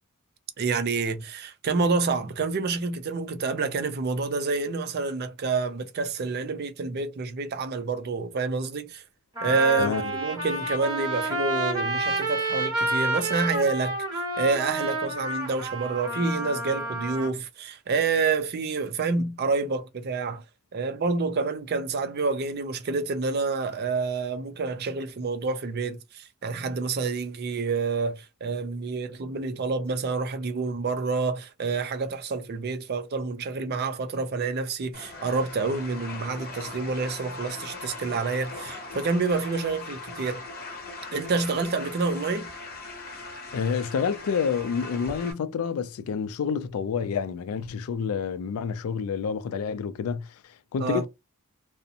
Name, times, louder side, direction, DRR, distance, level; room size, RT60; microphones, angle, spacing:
voice 1, 0.6-9.0 9.4-20.4 20.7-40.4 41.1-42.5 50.8-51.0, right 4 dB, 45° right, 0.4 m, -28 dB
Trumpet, 8.6-8.7 9.3-17.3, right 1 dB, 20° right, 1.0 m, -29 dB
voice 2, 9.8-10.1 43.5-50.4 50.7-51.1, left 6 dB, 75° left, 0.3 m, -28 dB
sound 1, 34.9-45.3, left 3 dB, 45° left, 0.9 m, -40 dB
2.5 x 2.0 x 2.7 m
head